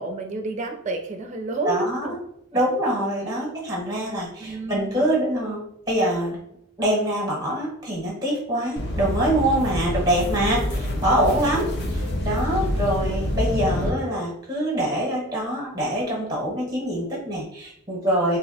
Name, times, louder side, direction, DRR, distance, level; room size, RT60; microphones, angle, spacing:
voice 1, 0.0-2.1 3.2-3.5 4.4-5.1 11.5-12.2 12.6-13.0, right 2 dB, 35° right, 4 dB, 0.4 m, -31 dB
voice 2, 1.6-2.2 2.5-5.6 5.9-6.4 6.8-18.4, right 1 dB, 20° right, -2 dB, 0.9 m, -24 dB
sound 1, 8.8-13.9, left 1 dB, 50° left, 0.5 m, -27 dB
2.6 x 2.0 x 4.0 m, 0.72 s
head